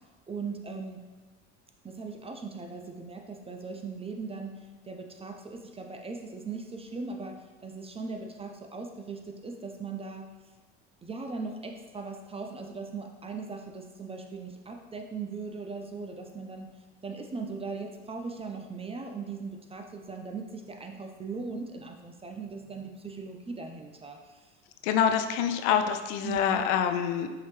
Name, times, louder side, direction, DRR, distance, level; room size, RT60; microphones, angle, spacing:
voice 1, 0.3-1.0 1.8-10.3 11.0-16.7 17.0-24.5 26.2-26.6, right 4 dB, 15° right, 3 dB, 0.4 m, -39 dB
voice 2, 24.8-27.3, left 8 dB, 70° left, 7 dB, 0.5 m, -26 dB
5.6 x 2.8 x 3.1 m, 1.3 s
hypercardioid pair, 65°, 37 cm